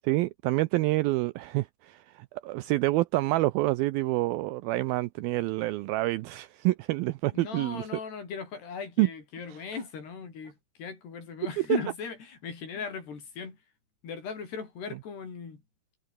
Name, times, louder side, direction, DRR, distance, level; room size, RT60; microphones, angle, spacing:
voice 1, 0.0-7.9 9.0-9.1, right 19 dB, 85° right, 2.1 m, -27 dB
voice 2, 7.3-13.6 14.0-15.6, left 5 dB, 75° left, 7.5 m, -38 dB
omnidirectional pair, 4.8 m